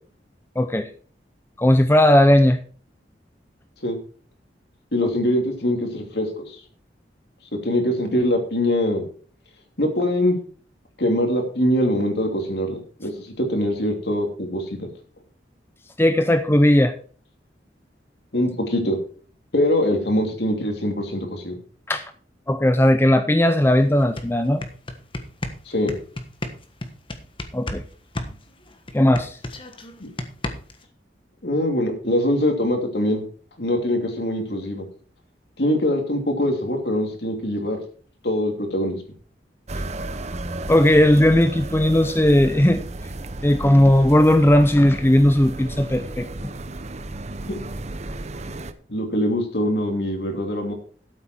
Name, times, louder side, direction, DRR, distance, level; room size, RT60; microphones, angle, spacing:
voice 1, 0.6-0.9 1.6-2.6 16.0-16.9 21.9-22.0 22.5-24.6 27.5-27.8 28.9-29.4 40.7-42.8 43.4-46.3, left 1 dB, 15° left, 9 dB, 0.6 m, -17 dB
voice 2, 4.9-6.6 7.6-9.1 9.8-10.4 11.0-14.9 18.3-19.0 19.5-21.5 25.7-26.0 30.0-30.1 31.4-33.2 33.6-34.9 35.6-37.8 38.2-39.0 47.5-47.6 48.9-50.7, left 1 dB, 65° left, 4 dB, 2.9 m, -23 dB
sound 1, 23.6-23.7 24.0-27.9 28.2-30.9, left 1 dB, 30° left, 1.3 m, -32 dB
sound 2, 39.7-48.7, right 2 dB, 40° right, 0.8 m, -33 dB
13.0 x 8.1 x 4.5 m, 0.42 s
head